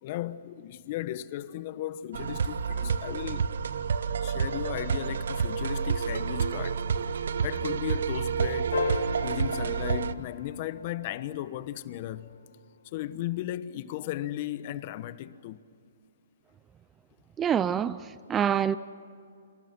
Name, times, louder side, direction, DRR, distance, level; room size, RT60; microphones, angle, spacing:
voice 1, 0.0-3.5 4.2-6.8 7.4-8.8 9.2-12.4 12.9-15.6, left 13 dB, 40° left, 1.1 m, -36 dB
sound 1, 2.1-10.1, right 6 dB, 70° right, 1.1 m, -29 dB
sound 2, 8.7-11.3 13.5-13.6, left 4 dB, 85° left, 3.4 m, -35 dB
voice 2, 17.4-18.8, right 8 dB, 15° right, 0.5 m, -26 dB
29.5 x 26.5 x 6.1 m
hypercardioid pair, 145°, 0 cm